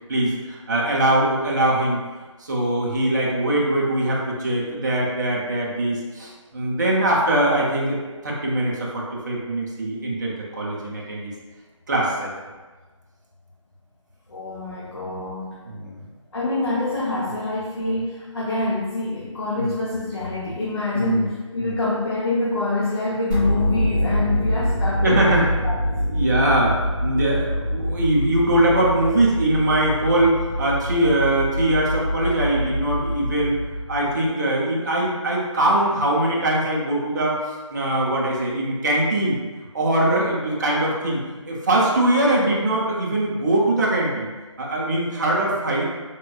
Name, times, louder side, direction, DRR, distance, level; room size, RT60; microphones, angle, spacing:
voice 1, 0.1-2.0 2.4-8.0 8.2-11.3 11.9-12.3 15.7-16.0 19.6-19.7 20.9-21.3 21.6-21.7 25.0-25.4 26.0-33.6 33.9-37.4 37.7-39.4 39.7-41.2 41.5-44.3 44.6-45.8, right 1 dB, 35° right, -4 dB, 0.6 m, -22 dB
voice 2, 14.3-15.6 16.3-25.8, left 2 dB, 55° left, -6 dB, 0.7 m, -26 dB
sound 1, 23.3-34.3, equal, 15° right, 1.0 m, -25 dB
3.5 x 2.9 x 2.3 m, 1.3 s
figure-of-eight pair, 165°, 16 cm